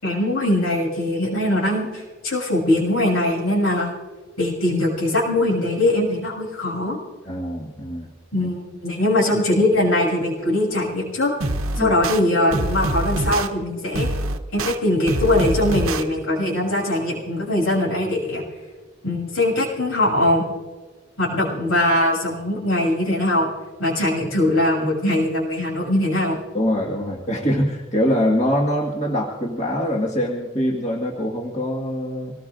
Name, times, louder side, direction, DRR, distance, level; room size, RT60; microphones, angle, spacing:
voice 1, 0.0-3.9 4.4-7.0 8.3-11.3 11.8-14.1 14.5-18.4 19.0-20.4 21.2-23.5 23.8-26.4, left 1 dB, 85° left, -3 dB, 6.6 m, -21 dB
voice 2, 7.2-8.1 8.4-8.5 11.8-11.9 26.5-32.3, equal, 30° left, -2 dB, 1.7 m, -23 dB
sound 1, 11.4-12.2 12.5-13.5 13.9-14.8 15.1-16.0, right 2 dB, 85° right, 1.0 m, -24 dB
26.0 x 19.0 x 2.6 m, 1.3 s
head